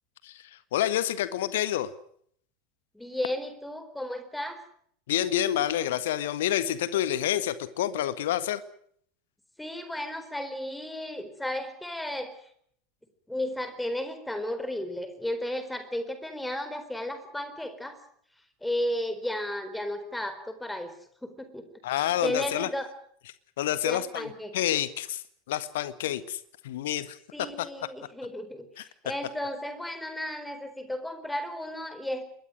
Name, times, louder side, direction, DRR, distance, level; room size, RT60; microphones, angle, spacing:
voice 1, 0.2-1.9 5.1-8.6 21.8-22.7 23.6-27.2 27.6-27.7 28.8-28.9, left 12 dB, 60° left, 14 dB, 1.6 m, -28 dB
voice 2, 2.9-4.6 9.6-12.4 13.3-18.0 18.6-20.9 21.2-22.9 23.8-24.5 27.3-32.2, left 1 dB, 5° left, 10 dB, 4.3 m, -34 dB
26.0 x 21.5 x 6.4 m, 0.65 s
figure-of-eight pair, 80°, 0 cm